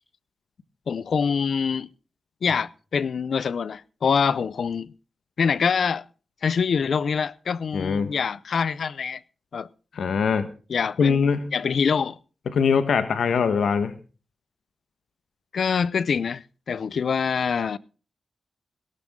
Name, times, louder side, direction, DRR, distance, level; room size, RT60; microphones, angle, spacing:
voice 1, 0.9-1.9 2.4-4.9 5.4-6.1 6.4-9.2 9.5-9.7 10.7-11.2 11.5-12.2 15.5-17.8, left 6 dB, 70° left, 0.6 m, -25 dB
voice 2, 7.7-8.1 9.9-10.5 11.0-11.5 12.5-13.9, left 6 dB, 85° left, 1.3 m, -22 dB
17.5 x 12.5 x 3.7 m
wide cardioid pair, 120°, 0 cm